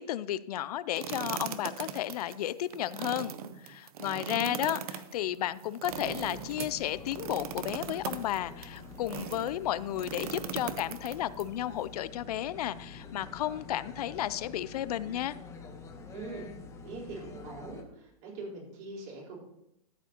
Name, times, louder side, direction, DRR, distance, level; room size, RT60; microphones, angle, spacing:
voice 1, 0.0-3.3 3.6-4.8 5.1-15.4, left 12 dB, 75° left, 17 dB, 0.4 m, -33 dB
sound 1, 1.0-9.5 10.0-11.4, right 8 dB, 65° right, 0.8 m, -39 dB
voice 2, 4.0-4.8 16.1-16.5 16.8-19.4, right 3 dB, 45° right, -4 dB, 4.0 m, -43 dB
sound 2, 5.9-17.8, left 4 dB, 15° left, 0.9 m, -47 dB
12.5 x 7.3 x 2.9 m, 0.82 s
hypercardioid pair, 140°, 20 cm